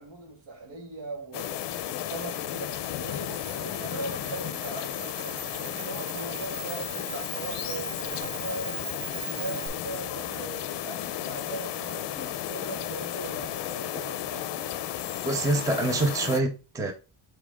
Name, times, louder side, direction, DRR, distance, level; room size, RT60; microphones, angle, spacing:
voice 1, 0.0-8.9 9.1-14.8, right 3 dB, 65° right, 2.7 m, -40 dB
sound 1, 1.3-16.4, left 12 dB, 60° left, 0.6 m, -34 dB
Camera, 2.7-9.7, right 5 dB, 85° right, 2.6 m, -41 dB
sound 2, 10.3-11.9 12.2-12.6 14.0-14.1, equal, 15° left, 2.5 m, -46 dB
voice 2, 15.2-16.9, right 2 dB, 5° right, 0.5 m, -26 dB
7.3 x 4.3 x 3.6 m
cardioid pair, 175°, 49 cm